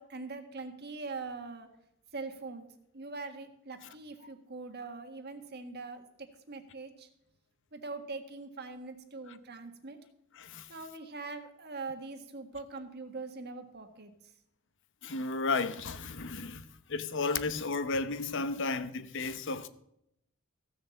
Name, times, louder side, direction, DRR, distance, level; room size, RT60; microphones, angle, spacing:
voice 1, 0.0-1.7 2.1-2.7 2.9-7.1 7.7-10.0 10.7-14.1, right 3 dB, 50° right, 1.6 m, -42 dB
voice 2, 10.3-10.7 15.0-19.7, left 3 dB, 60° left, 0.9 m, -33 dB
15.0 x 7.1 x 7.1 m
head